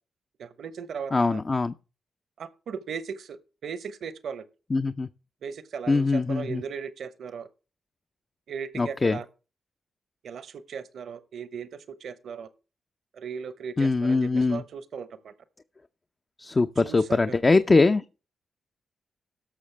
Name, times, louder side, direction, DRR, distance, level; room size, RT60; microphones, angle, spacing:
voice 1, 0.4-1.4 2.4-4.5 5.4-7.5 8.5-9.2 10.2-12.5 13.1-15.3 16.8-17.4, right 6 dB, 70° right, 0.8 m, -37 dB
voice 2, 1.1-1.7 4.7-5.1 5.9-6.6 8.8-9.2 13.8-14.6 16.4-18.0, left 3 dB, 35° left, 0.6 m, -22 dB
17.5 x 6.5 x 3.3 m
supercardioid pair, 45°, 0 cm